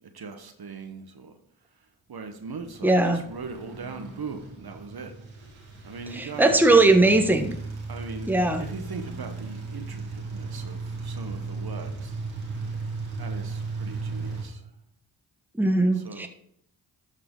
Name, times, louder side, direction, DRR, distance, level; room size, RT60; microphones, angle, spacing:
voice 1, 0.0-1.4 2.1-5.1 5.8-6.6 7.9-12.2 12.7-12.8 13.2-14.6 15.8-16.3, right 4 dB, 50° right, 7 dB, 1.2 m, -40 dB
sound 1, 2.5-14.4, right 3 dB, 90° right, 2.2 m, -36 dB
voice 2, 2.8-3.2 6.1-7.6 8.3-8.7 15.6-16.3, right 2 dB, 5° right, 5 dB, 1.1 m, -20 dB
12.5 x 4.9 x 3.8 m, 0.67 s
supercardioid pair, 40°, 48 cm